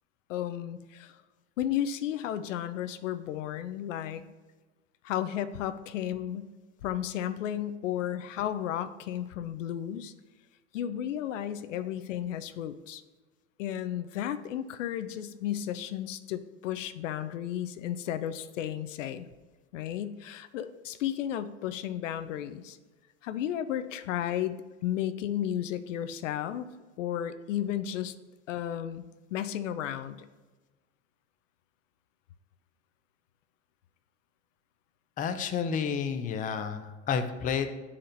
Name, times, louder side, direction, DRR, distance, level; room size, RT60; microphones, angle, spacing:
voice 1, 0.3-1.2 1.6-4.2 5.0-6.5 6.8-10.1 10.7-13.0 13.6-19.3 19.7-22.8 23.2-26.7 27.0-28.1 28.5-29.0 29.3-30.3, left 11 dB, 90° left, 11 dB, 0.5 m, -33 dB
voice 2, 35.2-37.7, left 6 dB, 20° left, 8 dB, 0.5 m, -30 dB
9.8 x 4.2 x 2.6 m, 1.3 s
hypercardioid pair, 110°, 36 cm